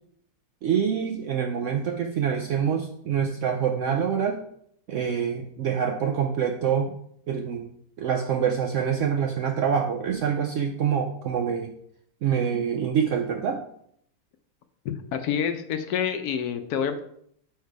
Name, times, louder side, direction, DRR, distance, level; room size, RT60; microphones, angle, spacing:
voice 1, 0.6-4.4 4.9-6.9 7.3-11.7 12.2-13.6, right 7 dB, 75° right, 4 dB, 0.7 m, -26 dB
voice 2, 14.8-17.0, left 7 dB, 75° left, 8 dB, 1.0 m, -28 dB
4.8 x 4.6 x 4.6 m, 0.69 s
omnidirectional pair, 1.8 m